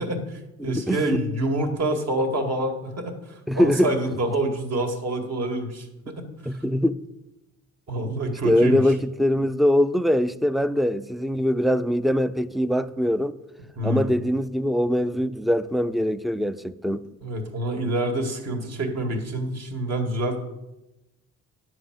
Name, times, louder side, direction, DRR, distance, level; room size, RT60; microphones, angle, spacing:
voice 1, 0.0-6.5 7.9-8.8 13.8-14.2 17.2-20.4, right 1 dB, 55° right, 2.0 m, -27 dB
voice 2, 0.6-1.2 3.5-3.9 6.5-7.0 8.4-13.4 13.8-17.1, equal, ahead, 0.4 m, -22 dB
10.0 x 4.8 x 7.8 m
cardioid pair, 90°, 30 cm